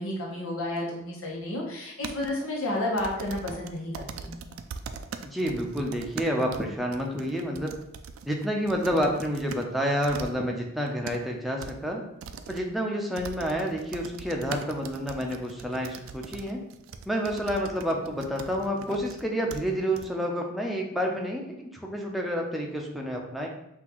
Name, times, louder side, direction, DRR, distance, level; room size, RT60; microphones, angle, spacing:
voice 1, 0.0-4.3, left 1 dB, 90° left, -2 dB, 1.1 m, -31 dB
sound 1, 2.0-2.3 3.0-9.7 10.0-10.3 10.8-11.2 11.6-11.7 12.2-12.6 13.2-19.2 19.5-19.6 20.0-20.1, right 6 dB, 80° right, 0.3 m, -41 dB
voice 2, 5.2-7.7 8.2-12.0 12.5-16.6 17.1-23.5, equal, ahead, 0 dB, 0.5 m, -29 dB
5.7 x 2.6 x 3.0 m, 0.82 s
head